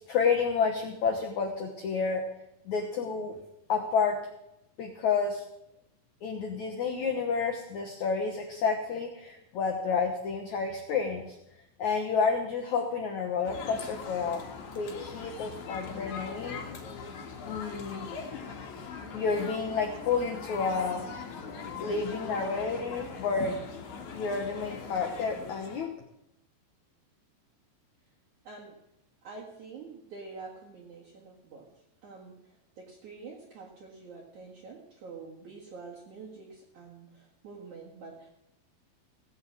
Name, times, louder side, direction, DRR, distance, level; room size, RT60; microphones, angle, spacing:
voice 1, 0.0-2.2 2.6-3.4 3.7-4.2 4.8-5.4 6.2-11.4 11.8-14.4 14.7-16.7 17.4-18.1 19.1-21.1 21.8-23.6 24.1-25.9, left 5 dB, 80° left, 2 dB, 1.7 m, -30 dB
sound 1, 13.4-25.9, left 5 dB, 55° left, 2.6 m, -41 dB
voice 2, 28.4-28.8 29.2-31.7 32.0-38.3, right 4 dB, 55° right, -3 dB, 2.6 m, -47 dB
17.0 x 8.1 x 7.6 m, 0.84 s
omnidirectional pair, 5.1 m